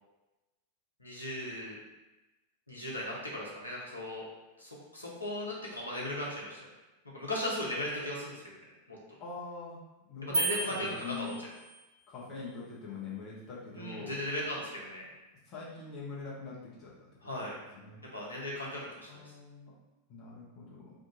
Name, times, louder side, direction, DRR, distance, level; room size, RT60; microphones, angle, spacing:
voice 1, 1.0-1.7 2.7-4.2 4.6-6.6 7.1-8.5 8.9-9.0 10.2-11.3 13.7-15.1 17.2-17.5 18.1-19.3, left 1 dB, 85° left, -5 dB, 0.9 m, -37 dB
voice 2, 9.2-11.3 12.1-14.2 15.5-17.5 17.7-18.0 19.1-19.7 20.1-20.9, left 4 dB, 35° left, -7 dB, 0.9 m, -44 dB
sound 1, 10.3-11.9, right 2 dB, 60° right, 0.7 m, -34 dB
2.8 x 2.5 x 3.8 m, 1.1 s
figure-of-eight pair, 90°, 0 cm